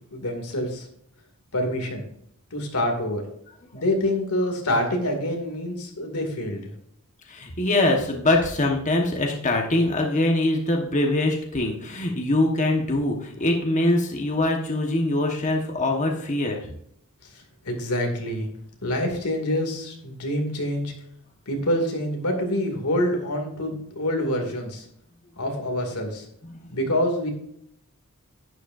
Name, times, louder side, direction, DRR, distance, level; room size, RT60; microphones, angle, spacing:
voice 1, 0.1-0.9 1.5-2.0 2.5-3.2 3.7-6.6 17.6-18.5 18.8-20.9 21.5-24.8 25.4-26.2 26.7-27.3, left 1 dB, 90° left, 3 dB, 2.4 m, -26 dB
voice 2, 7.3-16.6 26.4-26.6, left 2 dB, 35° left, 1 dB, 1.3 m, -23 dB
11.5 x 10.5 x 2.6 m, 0.70 s
head